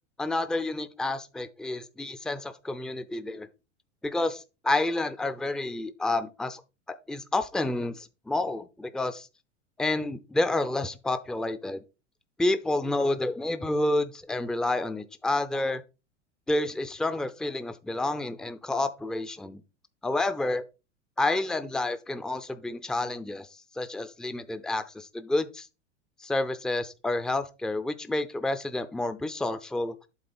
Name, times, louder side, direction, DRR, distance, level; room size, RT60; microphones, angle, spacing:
voice 1, 0.2-3.5 4.0-6.6 6.9-9.3 9.8-11.8 12.4-15.8 16.5-19.6 20.0-20.6 21.2-23.5 23.8-25.5 26.2-29.9, left 2 dB, ahead, 0.5 m, -29 dB
8.0 x 3.6 x 5.4 m
hypercardioid pair, 90°, 36 cm